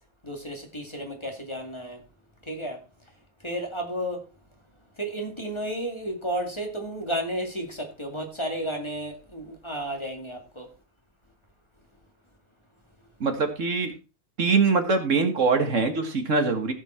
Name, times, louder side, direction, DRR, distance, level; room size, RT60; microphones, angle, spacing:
voice 1, 0.2-2.0 2.4-2.8 3.4-4.2 5.0-10.7, right 1 dB, 20° left, 2.3 m, -32 dB
voice 2, 13.2-13.9 14.4-16.7, right 4 dB, 65° right, 2.1 m, -23 dB
15.5 x 7.5 x 4.4 m
omnidirectional pair, 1.4 m